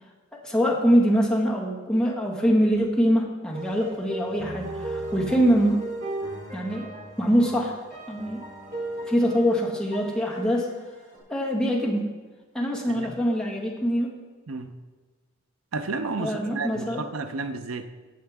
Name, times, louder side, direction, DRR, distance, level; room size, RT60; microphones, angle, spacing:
voice 1, 0.3-5.8 6.5-7.8 8.1-8.4 9.1-10.7 11.3-12.0 12.5-14.1 16.2-17.0, equal, 5° left, -4 dB, 1.7 m, -24 dB
sound 1, 3.5-11.2, right 1 dB, 45° right, 3.5 m, -36 dB
voice 2, 15.7-17.9, right 3 dB, 90° right, 9 dB, 0.7 m, -32 dB
16.0 x 6.6 x 3.6 m, 1.3 s
head